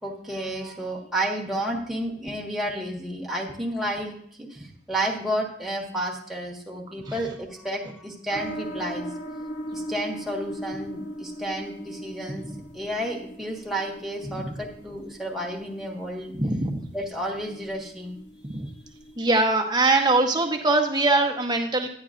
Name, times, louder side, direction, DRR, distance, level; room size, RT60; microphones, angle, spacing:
voice 1, 0.0-9.1 9.7-16.4 16.9-18.2, right 1 dB, ahead, -2 dB, 1.4 m, -31 dB
sound 1, 8.3-19.4, equal, 45° left, 0.9 m, -39 dB
voice 2, 16.4-16.8 18.4-18.7 19.2-21.9, right 2 dB, 25° right, 4 dB, 1.0 m, -22 dB
11.0 x 9.6 x 2.5 m, 0.67 s
head